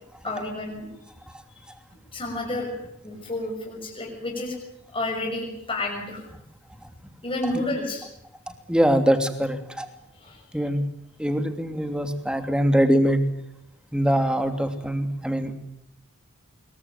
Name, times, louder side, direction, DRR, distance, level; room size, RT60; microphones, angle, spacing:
voice 1, 0.2-0.9 2.1-2.7 3.0-4.5 4.9-6.2 7.2-8.0 10.2-10.4, left 2 dB, 25° left, 0 dB, 6.5 m, -30 dB
voice 2, 8.7-9.9 10.5-10.8 11.2-13.2 13.9-15.5, equal, 5° right, 7 dB, 2.9 m, -23 dB
25.5 x 23.0 x 9.1 m, 0.76 s
head